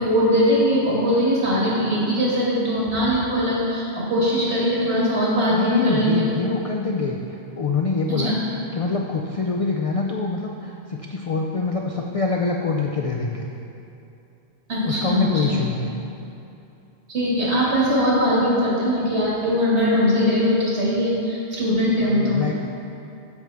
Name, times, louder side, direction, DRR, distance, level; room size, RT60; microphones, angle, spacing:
voice 1, 0.0-6.2 8.2-8.3 14.7-15.6 17.1-22.4, equal, 75° right, -7 dB, 2.2 m, -21 dB
voice 2, 5.5-8.4 8.7-13.5 14.8-15.9 22.0-22.5, left 4 dB, 60° left, 0 dB, 0.3 m, -25 dB
8.5 x 6.4 x 3.4 m, 2.7 s
omnidirectional pair, 1.1 m